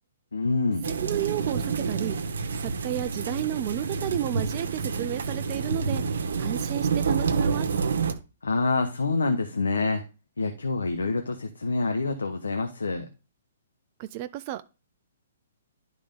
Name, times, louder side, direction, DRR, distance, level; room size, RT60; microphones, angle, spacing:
voice 1, 0.3-0.9 8.4-10.0 10.4-13.1, left 3 dB, 90° left, 6 dB, 0.9 m, -26 dB
voice 2, 0.8-7.7 14.0-14.7, right 14 dB, 40° right, 10 dB, 0.4 m, -32 dB
sound 1, 0.8-8.1, right 5 dB, 75° right, 1.0 m, -28 dB
10.5 x 3.6 x 5.1 m, 0.32 s
hypercardioid pair, 135°, 0 cm